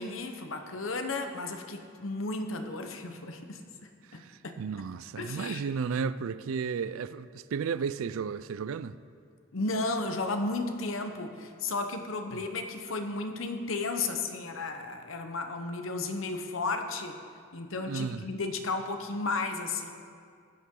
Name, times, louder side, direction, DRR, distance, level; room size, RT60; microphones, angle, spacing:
voice 1, 0.0-3.6 4.1-4.6 5.2-5.6 9.5-17.2 17.5-19.9, left 3 dB, 75° left, 0.9 m, -33 dB
voice 2, 4.1-9.0 17.8-18.3, right 6 dB, 80° right, 0.4 m, -33 dB
15.5 x 9.4 x 3.8 m
head